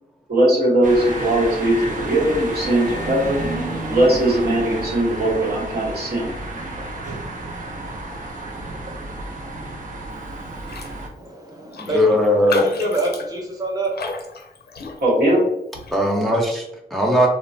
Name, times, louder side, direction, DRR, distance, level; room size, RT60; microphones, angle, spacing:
voice 1, 0.3-3.4 3.9-6.3 15.0-15.4, right 1 dB, 75° right, -4 dB, 1.2 m, -19 dB
sound 1, 0.8-11.1, right 2 dB, 50° right, 0.7 m, -31 dB
Raindrop, 10.6-11.0 11.3-11.4 11.7-15.3 15.7-16.0, left 3 dB, 75° left, 0.4 m, -29 dB
voice 2, 11.2-12.2 12.5-13.9, right 2 dB, 20° right, -1 dB, 0.9 m, -26 dB
voice 3, 11.8-12.7 15.9-17.3, left 1 dB, ahead, -2 dB, 0.7 m, -19 dB
3.0 x 2.2 x 2.6 m, 0.84 s
cardioid pair, 45°, 17 cm